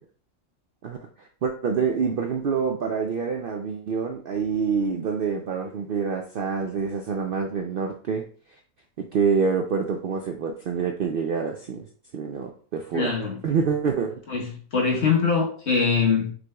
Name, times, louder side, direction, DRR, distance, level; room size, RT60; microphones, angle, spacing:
voice 1, 0.8-8.2 9.0-11.9 12.1-13.1 13.4-14.2, right 5 dB, 90° right, 3 dB, 0.4 m, -26 dB
voice 2, 12.9-13.4 14.3-16.3, left 5 dB, 50° left, -1 dB, 1.3 m, -23 dB
6.0 x 3.2 x 2.2 m, 0.44 s
omnidirectional pair, 1.5 m